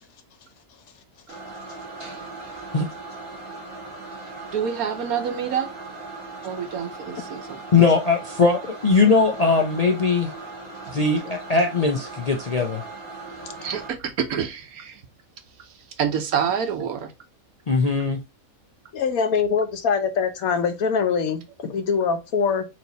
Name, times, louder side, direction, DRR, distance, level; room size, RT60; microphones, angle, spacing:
sound 1, 1.3-13.9, right 3 dB, 40° right, 2.2 m, -38 dB
voice 1, 4.5-5.7 6.4-7.6 10.8-10.9 13.6-15.0 15.6-17.1, right 7 dB, 90° right, 1.3 m, -27 dB
voice 2, 7.7-10.3 10.9-12.8 17.7-18.2, left 4 dB, 55° left, 0.4 m, -20 dB
voice 3, 18.9-22.7, left 6 dB, 80° left, 1.2 m, -23 dB
4.5 x 2.8 x 3.9 m
omnidirectional pair, 1.5 m